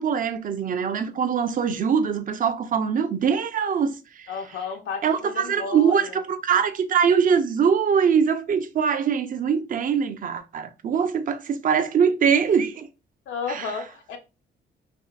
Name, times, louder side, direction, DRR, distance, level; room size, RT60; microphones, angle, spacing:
voice 1, 0.0-4.3 5.0-12.9 13.5-13.7, right 7 dB, 45° right, 0.4 m, -23 dB
voice 2, 4.3-6.2 13.3-14.2, left 5 dB, 80° left, 0.5 m, -32 dB
3.6 x 2.4 x 2.3 m
cardioid pair, 90°, 20 cm